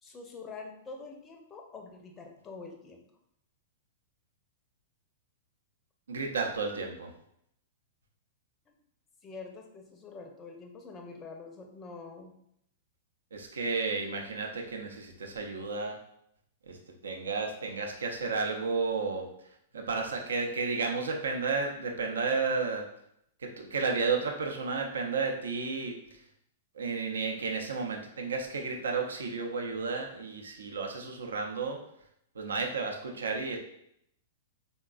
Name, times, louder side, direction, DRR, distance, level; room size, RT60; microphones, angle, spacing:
voice 1, 0.0-3.0 9.2-12.3, left 4 dB, 20° left, 3 dB, 0.5 m, -45 dB
voice 2, 6.1-7.1 13.3-16.0 16.7-16.8 17.0-19.3 19.7-22.8 23.4-26.0 26.8-31.8 32.4-33.6, right 4 dB, 70° right, 2 dB, 0.5 m, -32 dB
3.7 x 2.2 x 2.4 m, 0.74 s
figure-of-eight pair, 105°, 0 cm